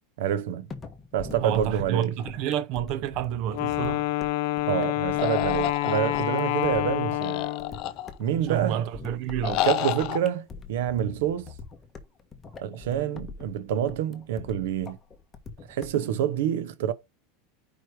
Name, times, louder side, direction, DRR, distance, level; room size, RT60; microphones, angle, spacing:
voice 1, 0.2-0.7 1.1-2.2 4.7-7.5 8.2-8.8 9.6-11.5 12.6-15.0 15.7-16.9, right 10 dB, 80° right, 0.9 m, -27 dB
sound 1, 0.7-16.1, left 5 dB, 20° left, 1.3 m, -43 dB
voice 2, 1.4-4.1 8.5-9.6, right 10 dB, 50° right, 0.7 m, -29 dB
Wind instrument woodwind instrument, 3.5-7.9, left 16 dB, 65° left, 0.9 m, -27 dB
sound 2, 5.2-6.5 7.2-8.4 9.4-10.2, left 13 dB, 45° left, 0.5 m, -30 dB
5.2 x 4.4 x 4.8 m
supercardioid pair, 150°, 0 cm